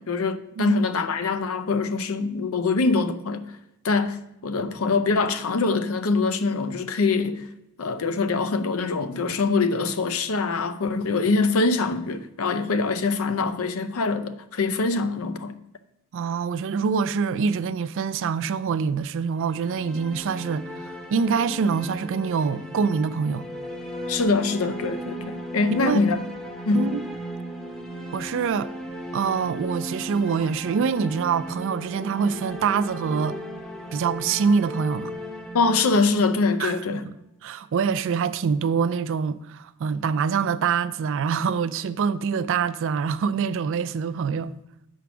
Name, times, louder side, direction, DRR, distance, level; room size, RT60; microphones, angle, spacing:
voice 1, 0.0-3.4 3.8-7.4 7.8-15.5 24.1-26.2 26.7-26.9 35.5-37.0, left 4 dB, 70° left, 0.6 m, -24 dB
voice 2, 16.1-23.5 25.7-26.0 26.7-27.0 28.1-28.7 29.1-33.4 33.9-35.1 36.6-37.2 37.4-44.5, right 6 dB, 60° right, 0.3 m, -25 dB
sound 1, 19.3-37.2, equal, ahead, 0.8 m, -36 dB
7.0 x 4.6 x 6.0 m
head